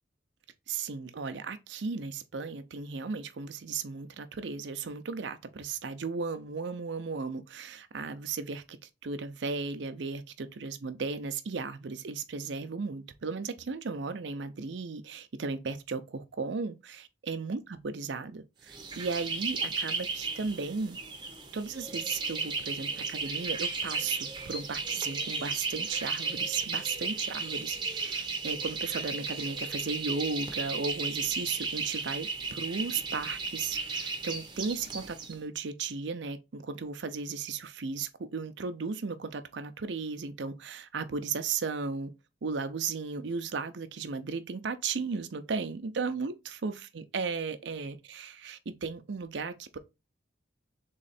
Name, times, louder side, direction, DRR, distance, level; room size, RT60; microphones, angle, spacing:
voice 1, 0.7-8.8 9.0-21.0 21.5-42.1 42.4-49.8, right 4 dB, 75° right, 0.6 m, -35 dB
sound 1, 18.7-35.3, right 4 dB, 25° right, 0.7 m, -35 dB
3.6 x 3.2 x 4.1 m
head